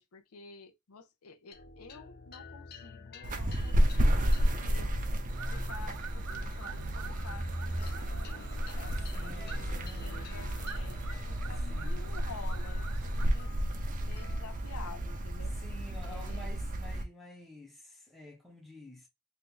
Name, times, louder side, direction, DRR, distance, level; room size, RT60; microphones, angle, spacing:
voice 1, 0.0-4.9 5.5-8.5 8.8-11.0 11.3-13.5 14.1-15.5 16.1-16.5, left 4 dB, 85° left, 0.6 m, -50 dB
sound 1, 1.5-16.2, left 5 dB, 45° left, 0.5 m, -50 dB
sound 2, 3.2-17.0, equal, 40° right, 0.6 m, -32 dB
sound 3, 5.3-13.3, right 7 dB, 80° right, 0.6 m, -48 dB
voice 2, 8.8-10.3 11.4-12.0 15.4-19.1, left 1 dB, ahead, 0.6 m, -50 dB
2.7 x 2.4 x 3.6 m
head